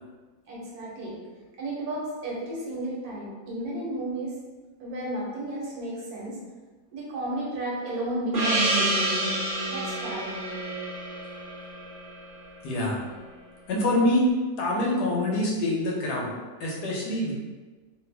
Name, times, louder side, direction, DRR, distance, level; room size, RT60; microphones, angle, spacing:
voice 1, 0.5-1.2 1.6-4.3 4.8-6.4 6.9-9.4 9.7-10.4, right 1 dB, 75° right, -4 dB, 1.4 m, -33 dB
Gong, 8.3-13.1, right 1 dB, 50° right, 0.6 m, -29 dB
voice 2, 12.6-13.0 13.7-14.2 14.6-17.3, left 1 dB, 85° left, -3 dB, 1.4 m, -25 dB
3.3 x 2.3 x 3.2 m, 1.3 s
omnidirectional pair, 1.7 m